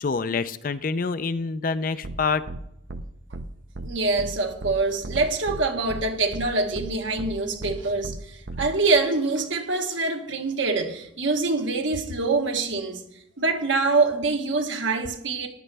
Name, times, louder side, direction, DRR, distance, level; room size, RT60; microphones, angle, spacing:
voice 1, 0.0-2.4, left 4 dB, 45° left, 0.4 m, -26 dB
sound 1, 2.0-2.2 2.5-2.6 2.9-3.0 3.3-3.5 3.7-3.9 4.2-4.3 4.6-4.7 5.0-5.6 5.9-6.0 6.3-6.4 6.7-6.9 7.2-7.3 7.6-7.7 8.0-8.2 8.5-8.7, right 2 dB, 55° right, 0.6 m, -34 dB
voice 2, 3.8-13.0 13.4-15.5, right 3 dB, 75° right, 1.4 m, -25 dB
14.0 x 11.0 x 3.4 m
head